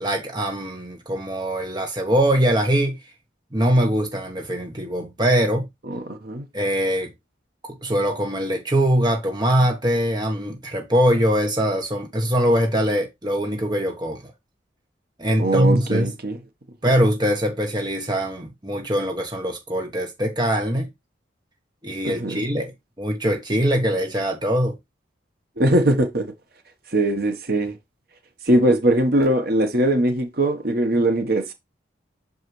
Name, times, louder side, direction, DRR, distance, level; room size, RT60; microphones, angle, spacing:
voice 1, 0.0-3.0 3.5-5.7 6.5-7.1 7.6-14.3 15.2-16.1 16.8-20.9 21.8-22.7 23.0-24.8, equal, 20° right, 1.2 m, -22 dB
voice 2, 5.9-6.4 15.4-16.4 22.0-22.4 25.6-26.3 26.9-27.8 28.5-31.5, right 1 dB, 50° right, 1.2 m, -21 dB
6.5 x 4.8 x 3.2 m
head